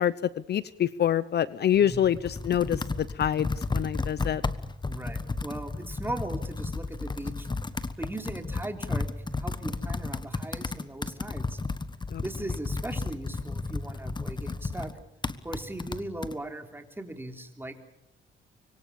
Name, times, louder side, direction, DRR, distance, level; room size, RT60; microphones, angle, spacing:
voice 1, 0.0-4.4 12.1-12.2, left 10 dB, 55° left, 17 dB, 0.8 m, -26 dB
Computer keyboard, 1.7-16.4, left 3 dB, 20° left, 1.3 m, -33 dB
voice 2, 1.8-2.1 4.9-7.5 8.0-11.6 12.2-14.9 15.4-17.8, right 1 dB, 10° right, 5 dB, 3.7 m, -38 dB
26.0 x 23.0 x 7.1 m, 0.79 s
cardioid pair, 90°, 20 cm